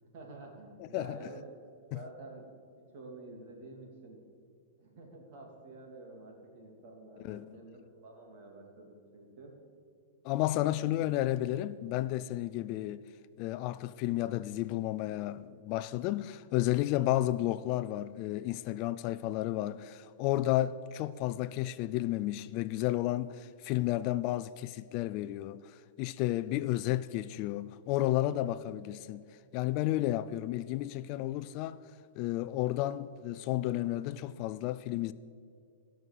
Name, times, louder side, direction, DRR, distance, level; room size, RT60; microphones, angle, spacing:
voice 1, 0.0-1.4 1.8-2.5 2.8-4.2 4.8-9.5 10.5-10.9, right 2 dB, 55° right, 3.0 m, -50 dB
voice 2, 10.2-13.1 13.4-25.6 26.0-29.3 29.5-31.8 32.2-35.1, left 15 dB, 45° left, 0.3 m, -32 dB
15.0 x 6.3 x 6.9 m
hypercardioid pair, 140°, 0 cm